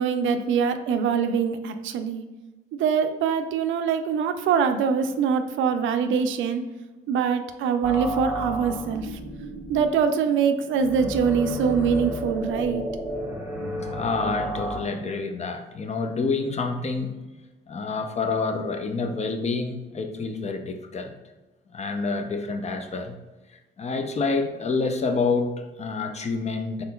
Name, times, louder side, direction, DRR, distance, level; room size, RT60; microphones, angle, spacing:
voice 1, 0.0-2.2 2.8-6.6 7.1-9.2 9.7-12.8, right 6 dB, 80° right, 8 dB, 0.4 m, -23 dB
sound 1, 7.8-14.8, right 1 dB, 10° right, 1.2 m, -32 dB
voice 2, 13.9-17.2 17.7-21.1 21.7-23.2 23.8-26.8, left 4 dB, 35° left, 6 dB, 0.5 m, -28 dB
4.2 x 3.8 x 2.3 m, 1.2 s
cardioid pair, 90°, 20 cm